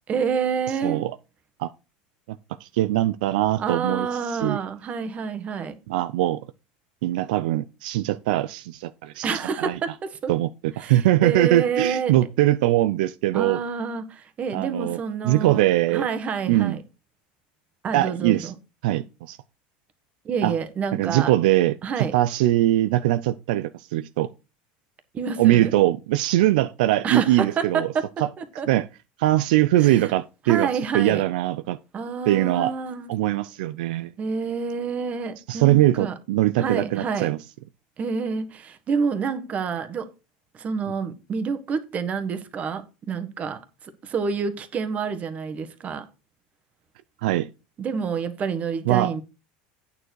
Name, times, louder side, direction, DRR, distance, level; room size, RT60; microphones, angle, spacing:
voice 1, 0.1-1.0 3.6-5.8 9.2-10.3 10.8-12.1 13.3-15.6 15.9-16.8 17.8-18.5 20.2-21.3 21.8-22.1 25.1-25.7 27.0-28.0 28.4-28.7 29.8-29.9 30.5-31.2 31.9-33.1 34.2-36.1 36.6-37.3 38.0-40.1 40.5-43.6 44.0-46.0 47.8-49.2, right 6 dB, 30° right, 1.5 m, -28 dB
voice 2, 0.8-1.2 1.6-1.7 2.3-4.1 4.4-4.6 5.9-6.4 7.0-9.3 9.6-9.8 10.3-13.6 14.5-15.0 15.2-16.1 16.5-16.8 17.9-18.5 18.8-19.4 20.4-20.5 20.9-24.3 25.4-27.9 28.2-28.3 28.7-28.9 29.2-30.7 30.9-31.8 32.3-32.7 33.1-34.1 35.5-37.4 47.2-47.5 48.9-49.2, right 15 dB, 80° right, 0.5 m, -21 dB
8.9 x 6.8 x 4.7 m
supercardioid pair, 125°, 5 cm